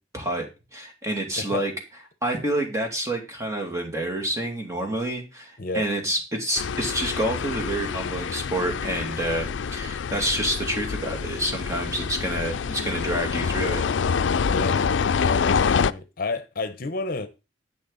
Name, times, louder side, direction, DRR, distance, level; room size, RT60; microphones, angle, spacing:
voice 1, 0.1-0.5 0.7-1.7 2.2-13.8, right 1 dB, 15° right, 2.5 m, -28 dB
voice 2, 1.4-1.7 5.6-5.9 14.4-17.3, left 3 dB, 50° left, 0.9 m, -31 dB
sound 1, 6.6-15.9, left 6 dB, 80° left, 0.4 m, -26 dB
10.5 x 8.0 x 4.1 m
head